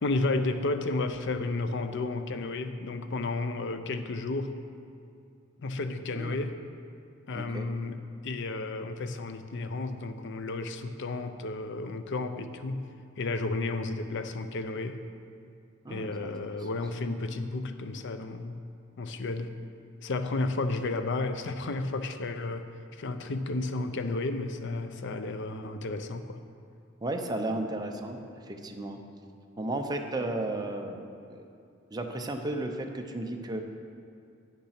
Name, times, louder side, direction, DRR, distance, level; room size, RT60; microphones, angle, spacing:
voice 1, 0.0-4.6 5.6-6.6 7.3-8.0 8.2-15.0 15.9-18.6 19.0-19.6 20.0-26.4, left 2 dB, 60° left, 9 dB, 0.6 m, -32 dB
voice 2, 7.3-7.7 15.8-16.1 16.5-16.6 27.0-29.0 29.6-31.5 31.9-33.6, right 2 dB, 20° right, 3 dB, 0.7 m, -34 dB
8.7 x 6.7 x 5.8 m, 2.4 s
head